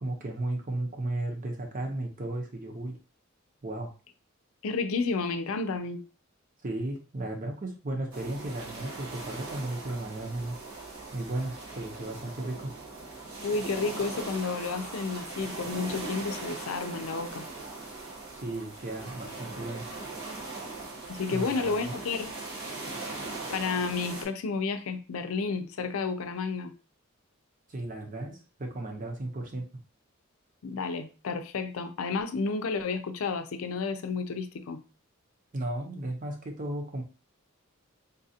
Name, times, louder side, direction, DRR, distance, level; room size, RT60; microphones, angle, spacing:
voice 1, 0.0-2.9 3.6-3.9 6.6-10.6 11.1-12.7 18.3-19.9 21.3-22.0 27.7-29.6 35.5-37.0, right 2 dB, 40° right, 0.8 m, -35 dB
voice 2, 4.6-6.0 13.4-17.5 21.1-22.3 23.5-26.7 30.6-34.8, left 4 dB, 85° left, 0.5 m, -31 dB
sound 1, 8.1-24.2, right 3 dB, 80° right, 1.0 m, -40 dB
3.9 x 2.4 x 2.7 m
head